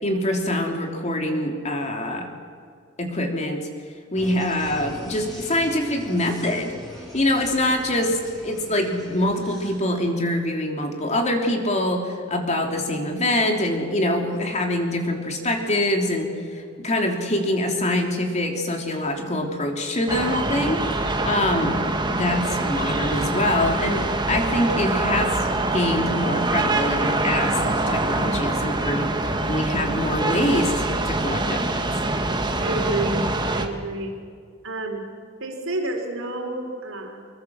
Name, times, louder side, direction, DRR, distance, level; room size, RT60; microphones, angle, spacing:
voice 1, 0.0-2.3 3.0-3.7 4.1-6.7 7.1-20.8 21.2-21.8 22.1-31.9, left 1 dB, 35° left, 3 dB, 3.3 m, -24 dB
sound 1, 4.2-9.9, equal, ahead, 6.8 m, -41 dB
sound 2, 20.1-33.7, right 2 dB, 20° right, 1.7 m, -24 dB
voice 2, 32.6-34.2 34.6-35.0 35.4-37.3, right 2 dB, 75° right, 3 dB, 4.2 m, -29 dB
25.0 x 21.5 x 7.3 m, 2.2 s
head